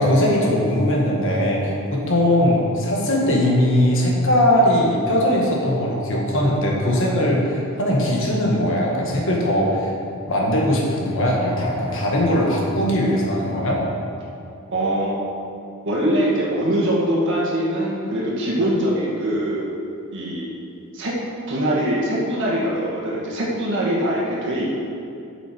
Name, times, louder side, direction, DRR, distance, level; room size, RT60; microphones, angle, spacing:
voice 1, 0.0-9.9 10.3-13.8, left 1 dB, 65° left, -2 dB, 1.7 m, -20 dB
voice 2, 14.7-15.1 15.8-19.7 20.1-20.5 20.9-21.2 21.5-24.8, right 1 dB, 60° right, -5 dB, 2.1 m, -22 dB
9.1 x 7.0 x 4.6 m, 2.7 s
head